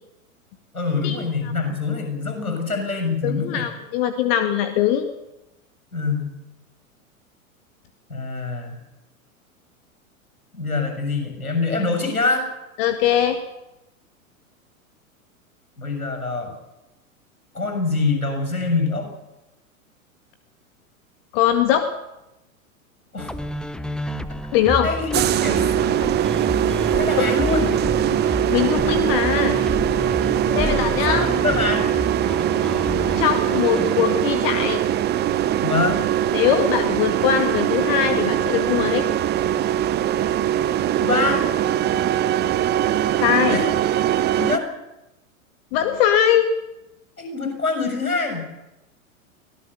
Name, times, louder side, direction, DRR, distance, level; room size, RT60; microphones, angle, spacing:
voice 1, 0.7-3.6 5.9-6.3 8.1-8.8 10.5-12.5 15.8-16.5 17.5-19.1 23.1-23.3 23.8-24.2 24.8-26.0 26.9-27.8 30.5-32.0 35.6-36.0 41.0-41.5 43.5-43.7 44.4-44.7 47.2-48.5, left 3 dB, 80° left, 5 dB, 7.0 m, -25 dB
voice 2, 3.2-5.1 12.8-13.4 21.3-21.9 24.5-24.9 27.2-27.3 28.3-29.6 30.6-31.3 33.2-34.8 36.3-39.1 43.2-43.6 45.7-46.6, left 9 dB, 40° left, 8 dB, 1.9 m, -21 dB
sound 1, 23.2-34.1, left 1 dB, ahead, 0.8 m, -30 dB
sound 2, 25.1-44.6, right 11 dB, 25° right, 1.0 m, -21 dB
24.0 x 17.5 x 6.8 m, 0.93 s
figure-of-eight pair, 95°, 42 cm